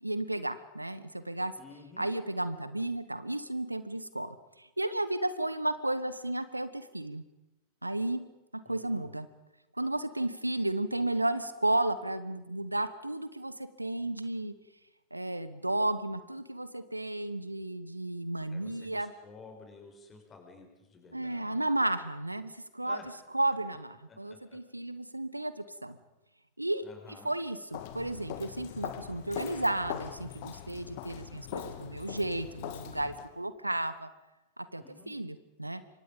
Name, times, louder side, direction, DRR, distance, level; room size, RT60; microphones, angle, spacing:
voice 1, 0.0-1.5 2.0-7.2 7.8-8.2 8.7-9.3 9.8-14.5 15.1-19.1 21.1-23.0 23.3-26.0 26.6-26.8 27.2-34.1 34.6-35.8, right 1 dB, 85° right, 14 dB, 1.2 m, -33 dB
voice 2, 1.6-2.1 8.6-9.1 18.5-21.6 22.8-23.1 24.1-24.6 26.8-27.3 34.8-35.1, left 4 dB, 25° left, 3 dB, 6.1 m, -52 dB
Walk footsteps, 27.7-33.3, left 11 dB, 50° left, 2.3 m, -41 dB
27.0 x 24.5 x 5.3 m, 0.96 s
figure-of-eight pair, 90°, 0 cm